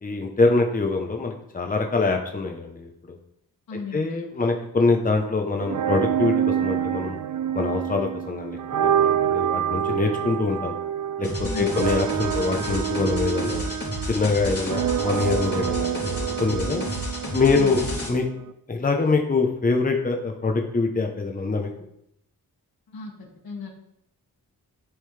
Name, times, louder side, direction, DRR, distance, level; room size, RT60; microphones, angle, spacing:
voice 1, 0.0-2.9 3.9-7.2 7.5-10.7 11.2-13.6 14.0-16.8 17.3-17.8 18.1-18.2 18.7-21.7, left 3 dB, 25° left, 3 dB, 0.9 m, -24 dB
voice 2, 3.7-4.2 11.4-11.8 17.5-17.8 22.9-23.7, left 4 dB, 75° left, -1 dB, 2.0 m, -36 dB
sound 1, 5.6-18.5, right 9 dB, 55° right, 0.5 m, -27 dB
sound 2, 11.2-18.1, equal, 40° left, 3.4 m, -31 dB
11.0 x 5.3 x 3.4 m, 0.77 s
wide cardioid pair, 115°, 36 cm